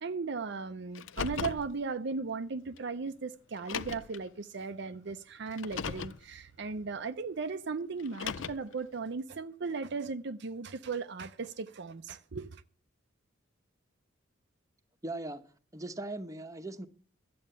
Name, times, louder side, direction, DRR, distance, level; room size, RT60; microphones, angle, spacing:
voice 1, 0.0-12.6, right 4 dB, 60° right, 0.6 m, -37 dB
Car, 0.9-1.7 2.8-2.9 3.6-4.2 5.5-6.2 8.0-8.7, left 6 dB, 70° left, 0.6 m, -37 dB
voice 2, 15.0-15.4 15.7-16.9, right 2 dB, 15° right, 0.9 m, -39 dB
13.0 x 8.6 x 6.8 m
head